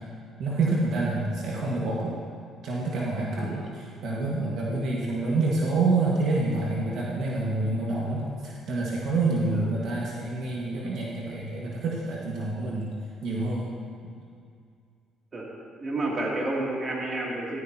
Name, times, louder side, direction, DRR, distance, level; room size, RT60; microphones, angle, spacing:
voice 1, 0.4-2.2 2.6-12.9 13.2-13.7 14.0-14.2, right 2 dB, 70° right, -4 dB, 1.6 m, -27 dB
voice 2, 15.8-17.6, right 2 dB, 35° right, -3 dB, 2.7 m, -30 dB
14.0 x 11.5 x 2.9 m, 2.3 s
cardioid pair, 95°, 0 cm